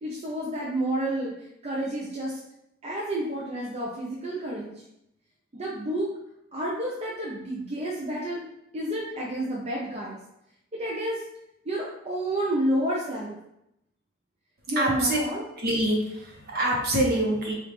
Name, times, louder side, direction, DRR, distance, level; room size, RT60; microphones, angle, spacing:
voice 1, 0.0-1.3 1.6-2.4 2.8-4.7 5.5-6.1 6.5-8.4 8.7-10.2 10.8-11.2 11.7-13.4 14.7-15.4, right 1 dB, 35° right, -5 dB, 0.7 m, -30 dB
voice 2, 14.8-15.2 15.6-17.5, right 1 dB, 55° right, -2 dB, 1.1 m, -25 dB
5.1 x 2.6 x 3.0 m, 0.81 s
head